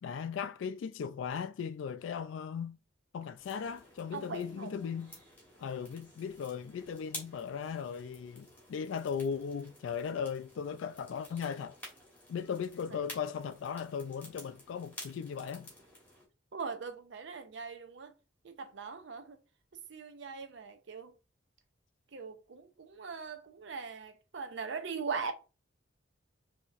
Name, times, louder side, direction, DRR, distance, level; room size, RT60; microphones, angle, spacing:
voice 1, 0.0-2.8 3.1-5.1 5.6-11.8 12.3-15.7, left 7 dB, 75° left, 0.3 m, -37 dB
sound 1, 3.4-16.3, left 1 dB, 10° left, 1.4 m, -52 dB
voice 2, 4.1-4.7 16.5-18.1 18.4-19.4 19.9-21.1 22.1-25.3, right 5 dB, 65° right, 0.6 m, -40 dB
4.0 x 2.8 x 2.4 m
head